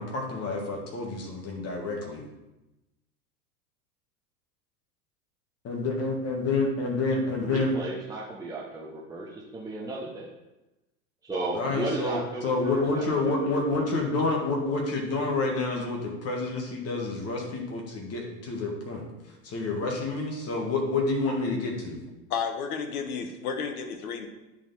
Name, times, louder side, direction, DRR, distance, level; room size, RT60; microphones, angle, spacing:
voice 1, 0.0-2.2 5.6-7.7 11.5-19.0 19.4-22.0, left 3 dB, 30° left, 0 dB, 2.1 m, -28 dB
voice 2, 7.4-10.3 11.2-13.4 13.7-13.9, right 2 dB, 10° right, -5 dB, 1.1 m, -35 dB
voice 3, 22.3-24.3, left 6 dB, 65° left, 5 dB, 1.3 m, -32 dB
9.7 x 4.5 x 4.3 m, 1.0 s
figure-of-eight pair, 85°, 47 cm